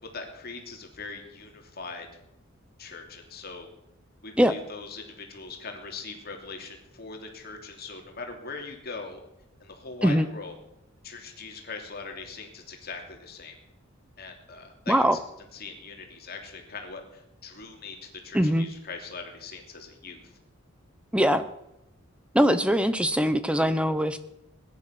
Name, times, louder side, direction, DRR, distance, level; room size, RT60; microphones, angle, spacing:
voice 1, 0.1-2.1 2.8-3.7 4.2-9.2 9.6-10.5 11.0-13.5 14.2-14.9 15.5-18.0 18.2-20.2, left 4 dB, 50° left, 3 dB, 2.9 m, -41 dB
voice 2, 14.9-15.2 18.3-18.7 21.1-21.4 22.3-24.2, equal, 5° right, 12 dB, 0.7 m, -22 dB
20.0 x 10.5 x 5.9 m, 0.87 s
head